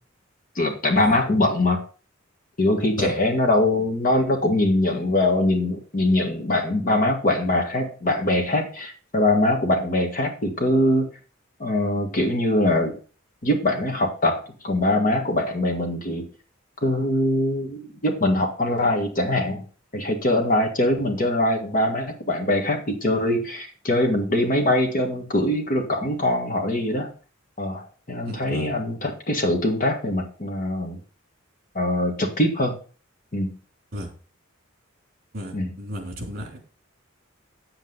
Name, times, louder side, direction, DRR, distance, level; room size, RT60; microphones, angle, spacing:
voice 1, 0.5-1.8 2.6-11.1 11.6-13.0 13.4-16.2 16.8-19.6 19.9-27.1 27.6-31.0 31.7-32.7 33.3-33.5 35.5-35.7, left 1 dB, 45° left, 3 dB, 1.6 m, -22 dB
voice 2, 28.2-28.7 33.9-34.1 35.3-36.6, equal, 45° right, 2 dB, 3.1 m, -34 dB
8.9 x 7.9 x 3.9 m, 0.39 s
head